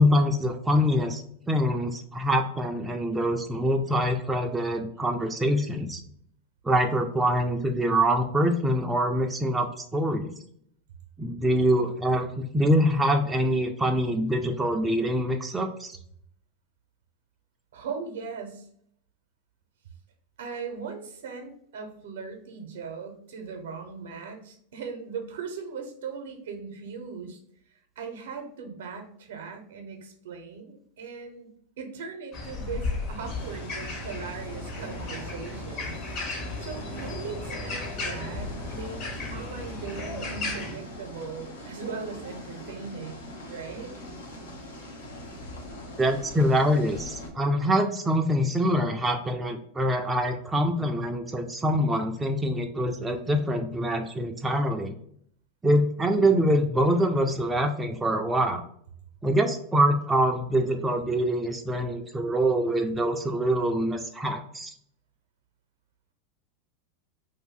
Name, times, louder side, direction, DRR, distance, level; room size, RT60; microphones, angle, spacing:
voice 1, 0.0-6.0 6.6-10.3 11.2-15.9 46.0-54.9 55.6-58.6 59.2-64.7, equal, 15° right, 4 dB, 0.4 m, -25 dB
voice 2, 17.7-18.7 20.4-27.4 28.0-31.5 31.8-35.9 36.6-43.9, right 5 dB, 75° right, 4 dB, 0.7 m, -39 dB
sound 1, 32.3-40.7, left 3 dB, 50° left, 1.1 m, -35 dB
sound 2, 33.2-47.3, left 1 dB, 85° left, 0.8 m, -41 dB
2.6 x 2.6 x 3.6 m, 0.67 s
hypercardioid pair, 90°, 0 cm